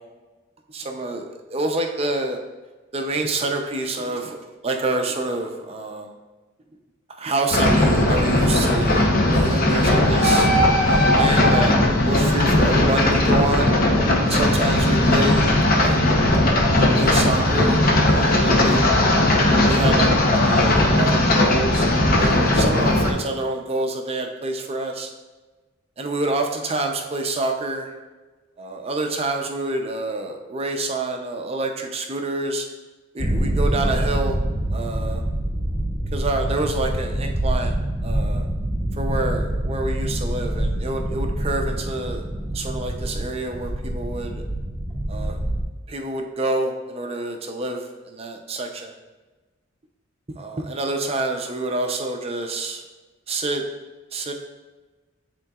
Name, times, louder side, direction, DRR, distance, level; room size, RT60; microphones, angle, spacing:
voice 1, 0.7-2.4 2.9-4.4 4.6-6.1 7.2-10.5 10.8-11.8 12.0-13.7 14.2-16.0 16.7-17.8 18.1-18.8 19.5-20.1 20.4-21.9 22.2-25.1 26.0-27.9 28.6-32.7 33.1-34.4 34.7-35.3 36.1-38.5 39.0-42.2 42.5-44.4 45.1-45.4 45.9-48.9 50.4-52.8 53.3-53.6 54.1-54.3, right 2 dB, 30° right, 3 dB, 0.6 m, -27 dB
sound 1, 7.5-23.1, left 1 dB, 45° left, 0.8 m, -18 dB
sound 2, 33.2-45.6, right 1 dB, 5° left, 1.6 m, -25 dB
10.5 x 3.8 x 2.4 m, 1.2 s
head